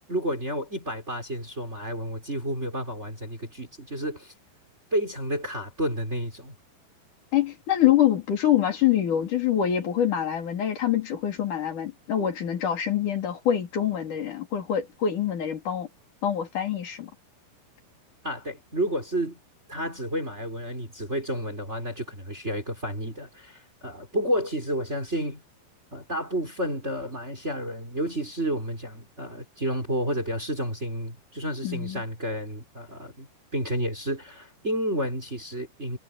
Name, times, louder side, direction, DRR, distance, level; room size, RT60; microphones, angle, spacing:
voice 1, 0.1-4.3 4.9-6.5 18.2-19.4 19.7-25.4 25.9-33.3 33.5-36.0, equal, 15° right, 4.9 m, -31 dB
voice 2, 7.3-15.9 16.2-17.1 31.6-32.0, left 10 dB, 50° left, 4.4 m, -25 dB
omnidirectional pair, 5.0 m